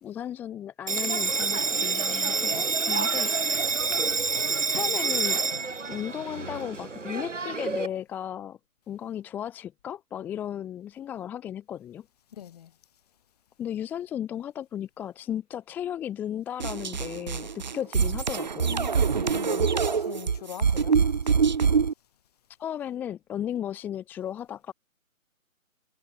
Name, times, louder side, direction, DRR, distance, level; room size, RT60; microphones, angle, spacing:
voice 1, 0.0-3.7 4.7-5.4 5.9-8.6 8.9-12.1 13.6-18.8 22.6-24.7, left 10 dB, 5° left, 1.3 m, -35 dB
Bell, 0.9-7.9, right 4 dB, 60° right, 5.2 m, -27 dB
voice 2, 12.3-12.7 18.6-21.0, left 10 dB, 30° left, 6.1 m, -40 dB
sound 1, 16.6-21.9, right 6 dB, 35° right, 1.0 m, -25 dB
figure-of-eight pair, 145°, 41 cm